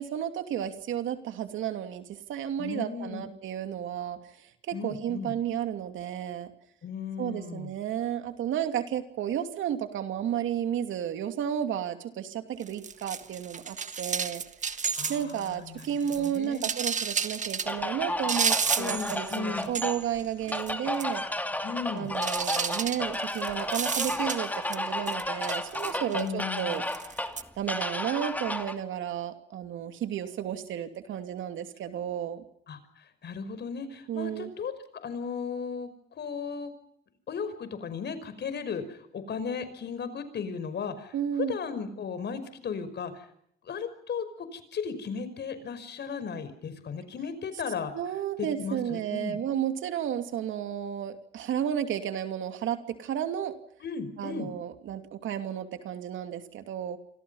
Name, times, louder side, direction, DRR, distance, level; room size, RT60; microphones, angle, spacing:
voice 1, 0.0-6.5 7.2-14.4 15.1-21.2 21.9-26.8 27.6-32.4 34.1-34.5 41.1-41.6 47.9-53.6 54.2-57.0, right 10 dB, 80° right, 7 dB, 2.8 m, -32 dB
voice 2, 2.6-3.3 4.7-5.3 6.8-7.7 15.0-16.7 18.8-19.7 21.6-22.1 26.1-26.8 32.7-34.7 35.0-36.7 37.3-41.1 41.5-43.3 43.6-47.9 48.4-49.4 53.8-54.5, left 6 dB, 60° left, 12 dB, 5.5 m, -36 dB
sound 1, 12.6-15.5 15.8-17.7 18.3-19.4 19.6-20.2 20.5-20.7 21.0-21.1 22.2-24.8 25.1-26.3 26.9-27.4, right 6 dB, 40° right, 1.5 m, -31 dB
sound 2, 17.7-28.7, left 1 dB, 10° left, 2.7 m, -33 dB
28.0 x 25.5 x 5.7 m, 0.71 s
cardioid pair, 90°, 20 cm